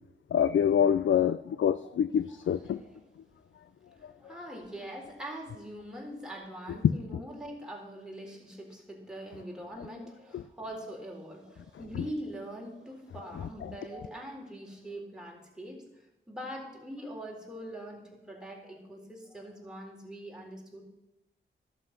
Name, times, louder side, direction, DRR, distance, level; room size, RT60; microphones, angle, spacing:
voice 1, 0.3-2.8, left 8 dB, 70° left, 14 dB, 0.4 m, -25 dB
voice 2, 2.2-3.1 3.8-20.8, right 1 dB, 5° right, -1 dB, 3.8 m, -43 dB
11.5 x 7.7 x 5.8 m, 0.91 s
cardioid pair, 45°, 21 cm